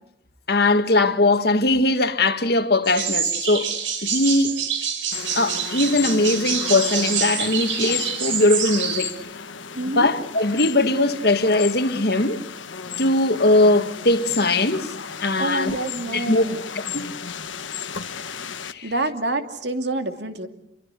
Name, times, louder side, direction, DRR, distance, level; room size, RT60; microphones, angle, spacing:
voice 1, 0.5-3.7 4.0-4.6 5.4-9.2 10.0-12.4 13.0-14.9 15.2-15.8 16.1-16.4 16.9-17.1 18.6-18.9, left 2 dB, 55° left, 1.9 m, -20 dB
sound 1, 2.8-9.1, right 7 dB, 85° right, 5.2 m, -26 dB
sound 2, 5.1-18.7, left 7 dB, 90° left, 1.5 m, -34 dB
voice 2, 9.7-10.1 15.4-16.7 18.8-20.5, right 2 dB, 65° right, 2.7 m, -27 dB
28.5 x 23.5 x 8.3 m
head